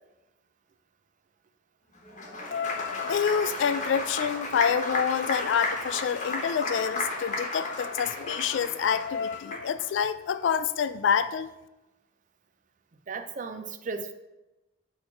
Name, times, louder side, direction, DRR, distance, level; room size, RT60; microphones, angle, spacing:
Applause, 2.0-9.8, left 2 dB, 40° left, 1.1 m, -34 dB
voice 1, 2.5-11.5, left 7 dB, 80° left, 0.3 m, -27 dB
voice 2, 13.1-14.1, right 4 dB, 40° right, 0.5 m, -35 dB
6.3 x 3.1 x 5.7 m
head